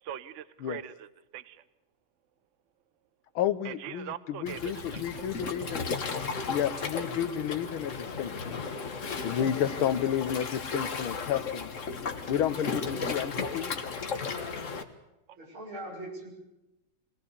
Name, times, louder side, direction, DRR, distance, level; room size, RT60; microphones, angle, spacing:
voice 1, 0.0-1.6 3.6-5.0 9.7-9.8 15.3-15.4, right 10 dB, 55° right, 16 dB, 0.9 m, -42 dB
voice 2, 3.4-5.9 6.5-8.6 9.2-11.7 12.3-13.7, left 9 dB, 80° left, 13 dB, 1.8 m, -31 dB
Waves surf, 4.5-14.8, left 5 dB, 40° left, 1.6 m, -35 dB
voice 3, 14.1-14.6 15.4-16.3, right 1 dB, 80° right, 0 dB, 7.3 m, -42 dB
23.5 x 18.5 x 7.0 m, 0.95 s
omnidirectional pair, 2.3 m